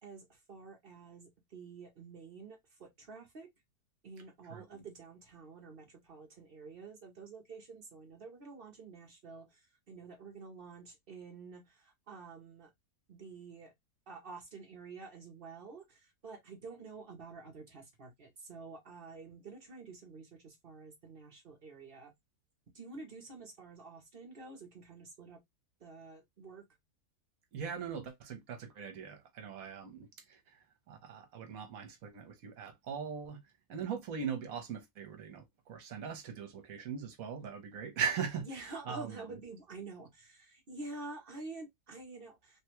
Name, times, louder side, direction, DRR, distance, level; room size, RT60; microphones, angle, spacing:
voice 1, 0.0-3.5 4.0-12.7 13.1-13.7 14.1-22.1 22.7-25.4 25.8-26.7 38.5-42.6, right 3 dB, 45° right, 0.8 m, -49 dB
voice 2, 4.5-4.8 27.5-33.4 33.7-39.2, right 7 dB, 65° right, 1.2 m, -40 dB
3.3 x 2.2 x 2.9 m
omnidirectional pair, 1.6 m